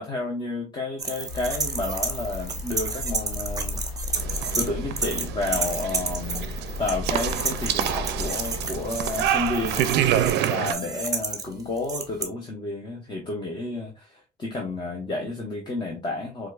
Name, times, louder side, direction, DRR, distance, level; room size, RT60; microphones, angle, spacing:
voice 1, 0.0-4.1 4.6-6.5 6.8-9.9 10.5-16.5, left 2 dB, 25° left, 0.8 m, -31 dB
sound 1, 1.0-4.7 5.0-12.2, right 4 dB, 20° right, 0.8 m, -31 dB
sound 2, 1.3-10.3, left 3 dB, 85° left, 1.0 m, -35 dB
sound 3, 4.1-10.7, right 11 dB, 80° right, 0.4 m, -27 dB
4.5 x 2.4 x 2.3 m
cardioid pair, 110°, 17 cm